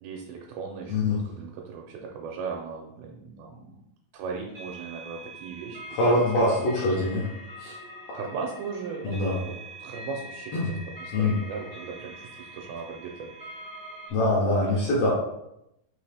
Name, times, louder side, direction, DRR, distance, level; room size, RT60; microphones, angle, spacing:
voice 1, 0.0-3.8 4.1-6.2 6.5-7.2 8.1-10.5 11.0-13.7 14.6-14.7, right 5 dB, 85° right, 1 dB, 2.4 m, -38 dB
sound 1, 4.5-14.1, equal, 70° right, 0.6 m, -43 dB
voice 2, 5.9-7.3 7.6-7.7 9.0-9.4 10.5-10.7 11.1-11.4 14.1-15.1, left 1 dB, 75° left, -5 dB, 1.5 m, -24 dB
5.5 x 2.8 x 3.4 m, 0.82 s
omnidirectional pair, 4.1 m